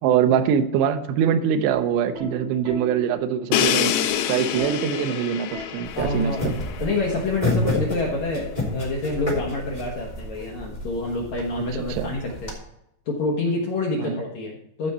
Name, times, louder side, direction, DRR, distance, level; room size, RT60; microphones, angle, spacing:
voice 1, 0.0-3.9 4.3-6.6 11.8-12.1 14.0-14.2, right 8 dB, 85° right, 7 dB, 2.9 m, -23 dB
Plucked string instrument, 1.7-8.7 9.8-10.1, equal, 45° right, 3.7 m, -40 dB
Crash cymbal, 3.5-7.3, left 10 dB, 80° left, 2.5 m, -26 dB
sound 1, 5.8-12.5, left 1 dB, 10° left, 2.5 m, -30 dB
voice 2, 6.0-6.5 6.8-12.5 13.1-14.9, left 2 dB, 65° left, -1 dB, 1.9 m, -27 dB
15.0 x 5.2 x 4.2 m, 0.81 s
omnidirectional pair, 4.8 m